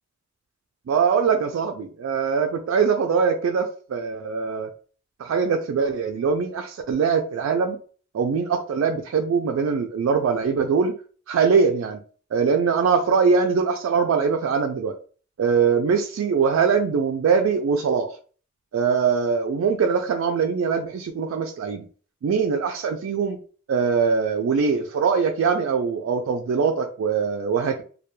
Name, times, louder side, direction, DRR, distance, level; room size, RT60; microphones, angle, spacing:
voice 1, 0.9-4.7 5.2-7.8 8.1-10.9 11.3-12.0 12.3-14.9 15.4-18.2 18.7-21.9 22.2-23.4 23.7-27.8, right 5 dB, 85° right, 4 dB, 0.3 m, -22 dB
2.2 x 2.2 x 2.9 m, 0.41 s
head